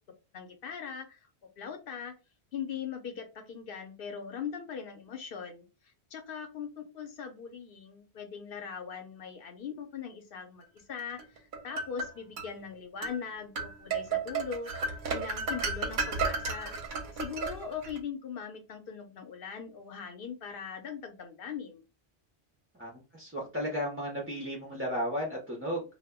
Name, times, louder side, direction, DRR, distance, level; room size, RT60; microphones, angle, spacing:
voice 1, 0.3-1.3 1.6-2.2 2.5-14.7 15.1-16.7 17.1-21.8, left 7 dB, 65° left, 6 dB, 0.7 m, -40 dB
sound 1, 11.2-12.5 13.0-13.2 13.6-18.0, right 4 dB, 55° right, 0.7 m, -33 dB
voice 2, 22.8-25.8, equal, 20° right, -2 dB, 0.3 m, -34 dB
2.1 x 2.0 x 3.4 m, 0.30 s
omnidirectional pair, 1.1 m